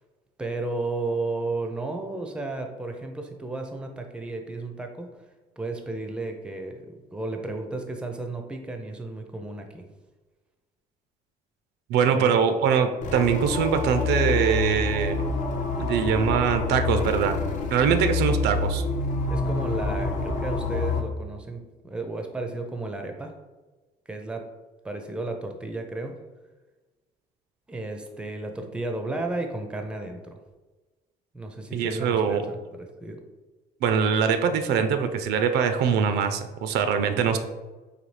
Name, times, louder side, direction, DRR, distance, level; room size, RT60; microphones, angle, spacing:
voice 1, 0.4-5.1 5.6-9.8 12.1-12.3 18.1-18.2 19.3-23.3 24.1-24.4 24.8-26.1 27.7-30.4 31.3-33.2, right 2 dB, 5° right, 4 dB, 0.4 m, -33 dB
voice 2, 11.9-15.2 15.8-17.4 17.7-18.8 31.7-32.5 33.8-37.4, right 7 dB, 75° right, 8 dB, 0.4 m, -23 dB
sound 1, 13.0-21.0, left 3 dB, 45° left, 0.5 m, -27 dB
4.0 x 2.7 x 3.2 m, 1.2 s
cardioid pair, 110°, 17 cm